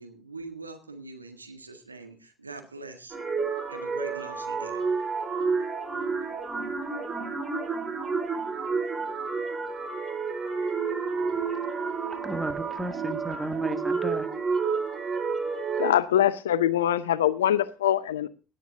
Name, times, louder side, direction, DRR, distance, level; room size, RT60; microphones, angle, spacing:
voice 1, 0.0-3.2 3.7-4.8, right 3 dB, 90° right, 6 dB, 1.7 m, -43 dB
sound 1, 3.1-15.9, right 5 dB, 30° right, 4.5 m, -30 dB
voice 2, 12.2-14.3, right 1 dB, 10° right, 10 dB, 1.7 m, -33 dB
voice 3, 15.8-18.3, left 11 dB, 75° left, 19 dB, 0.7 m, -23 dB
17.5 x 10.0 x 3.6 m, 0.33 s
figure-of-eight pair, 55°, 0 cm